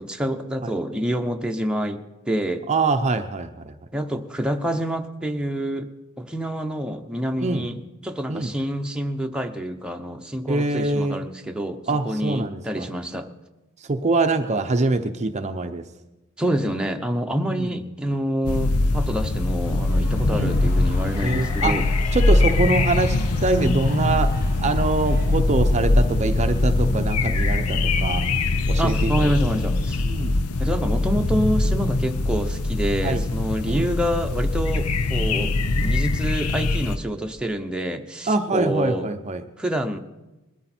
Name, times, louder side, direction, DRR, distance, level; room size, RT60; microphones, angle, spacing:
voice 1, 0.0-2.6 3.9-5.9 6.2-13.3 16.4-21.9 28.8-30.0 30.6-39.1 39.6-40.0, equal, 5° right, 3 dB, 0.8 m, -27 dB
voice 2, 2.7-3.7 7.4-7.6 8.3-8.5 10.5-11.2 11.9-12.9 13.9-15.8 17.4-17.7 20.3-20.5 21.2-21.8 22.1-28.3 28.7-29.3 30.0-30.3 33.0-33.2 33.6-33.9 38.3-39.4, right 3 dB, 30° right, 7 dB, 0.7 m, -24 dB
sound 1, 18.4-37.0, left 2 dB, 80° left, 0.8 m, -22 dB
sound 2, 19.6-28.0, left 2 dB, 45° left, 5.6 m, -43 dB
21.0 x 13.0 x 4.4 m, 1.0 s
head